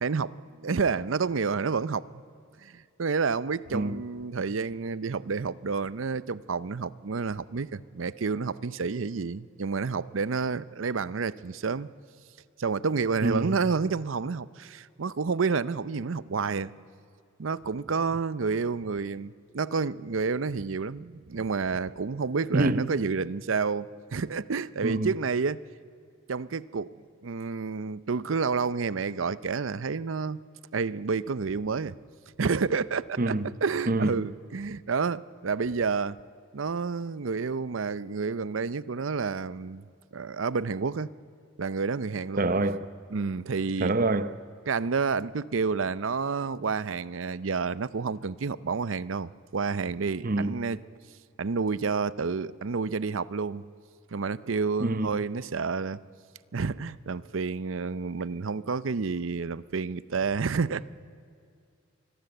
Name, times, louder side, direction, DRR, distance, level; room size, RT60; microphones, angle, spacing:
voice 1, 0.0-2.2 2.6-11.9 12.6-16.7 17.4-25.6 26.3-26.9 27.2-30.4 30.7-32.0 32.4-36.2 36.5-39.8 40.1-41.1 41.6-42.5 43.1-43.9 44.7-50.8 51.4-53.6 54.1-56.0 56.5-60.9, right 5 dB, 75° right, 0.6 m, -29 dB
voice 2, 13.2-13.6 22.5-22.9 24.8-25.1 33.2-33.5 33.9-34.2 42.4-42.9 43.8-44.3 50.2-50.6 54.8-55.2, right 2 dB, 45° right, 0.8 m, -26 dB
26.0 x 21.0 x 7.9 m
head